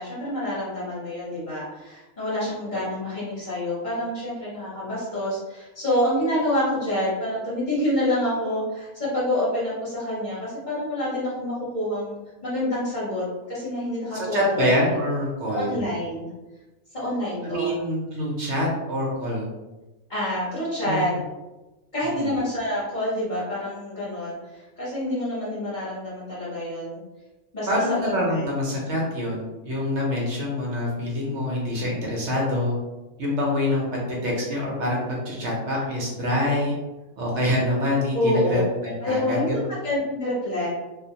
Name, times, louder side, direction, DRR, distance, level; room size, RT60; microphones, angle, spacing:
voice 1, 0.0-12.2 12.4-14.7 15.5-16.3 16.9-17.8 20.1-21.1 21.9-27.0 27.5-27.7 28.3-28.4 38.1-38.6 39.0-40.7, left 1 dB, 40° left, -8 dB, 0.9 m, -27 dB
voice 2, 14.1-15.7 17.4-19.5 20.8-21.0 22.2-22.3 27.7-32.7 33.2-33.8 34.2-36.7 37.2-39.6, left 1 dB, 65° right, -3 dB, 0.9 m, -25 dB
2.4 x 2.0 x 2.7 m, 1.1 s
omnidirectional pair, 1.4 m